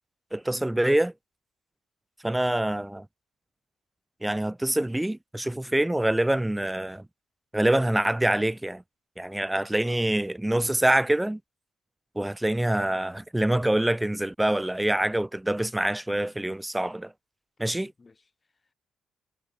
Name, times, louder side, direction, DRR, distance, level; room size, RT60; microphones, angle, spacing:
voice 1, 0.3-1.1 2.2-3.1 4.2-7.1 7.5-8.8 9.2-11.4 12.2-17.1 17.6-17.9, right 1 dB, 10° right, 0.7 m, -25 dB
voice 2, 9.5-10.1 17.6-18.7, left 4 dB, 30° left, 5.9 m, -55 dB
cardioid pair, 90°, 0 cm